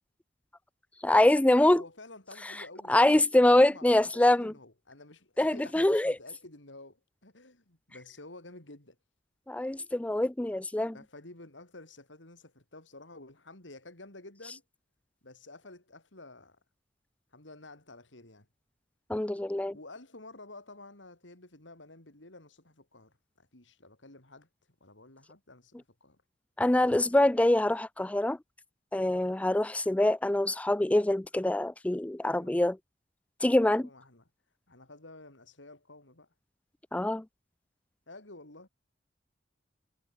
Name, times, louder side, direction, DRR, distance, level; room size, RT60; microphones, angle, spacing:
voice 1, 1.0-1.8 2.9-4.5 5.4-6.1 9.5-10.9 19.1-19.7 26.6-28.4 28.9-32.8 33.4-33.9 36.9-37.2, left 1 dB, 5° left, 0.3 m, -24 dB
voice 2, 1.6-3.0 3.4-9.0 10.9-14.6 15.2-16.6 17.3-18.5 19.7-24.5 24.8-26.2 26.7-27.0 32.3-32.6 33.7-34.2 34.7-36.3 38.1-38.7, left 2 dB, 90° left, 4.5 m, -51 dB
head